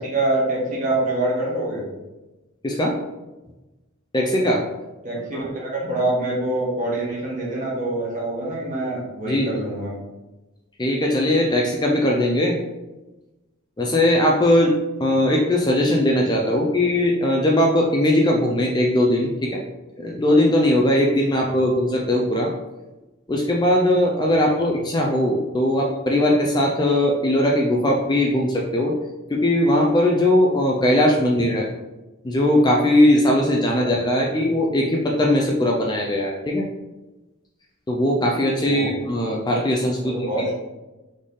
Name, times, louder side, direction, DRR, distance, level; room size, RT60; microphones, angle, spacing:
voice 1, 0.0-1.9 5.0-10.0 15.1-15.2 21.3-21.6 24.6-24.7 33.8-34.0 38.6-39.0 40.0-40.5, right 2 dB, 35° right, -5 dB, 1.3 m, -25 dB
voice 2, 2.6-3.0 4.1-4.6 5.3-5.4 9.3-9.5 10.8-12.6 13.8-14.7 15.0-19.6 20.0-22.5 23.3-28.9 29.3-31.7 32.2-36.7 37.9-40.5, left 1 dB, 20° left, -1 dB, 0.4 m, -19 dB
4.2 x 3.2 x 3.6 m, 1.1 s
head